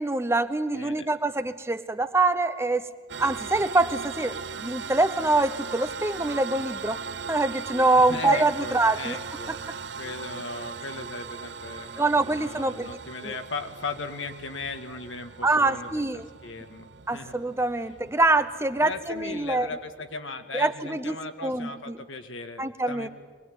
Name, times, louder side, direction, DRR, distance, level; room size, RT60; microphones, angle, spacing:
voice 1, 0.0-2.8 3.2-7.0 7.3-9.2 12.0-12.9 13.2-13.3 15.4-16.3 17.1-19.7 20.5-21.1 21.4-21.7 22.6-23.1, right 2 dB, 15° right, 11 dB, 0.7 m, -24 dB
voice 2, 0.7-1.1 8.1-17.3 18.8-23.1, left 3 dB, 80° left, 7 dB, 1.9 m, -37 dB
sound 1, 3.1-20.2, right 5 dB, 65° right, 0.8 m, -39 dB
24.5 x 20.0 x 9.2 m, 1.4 s
head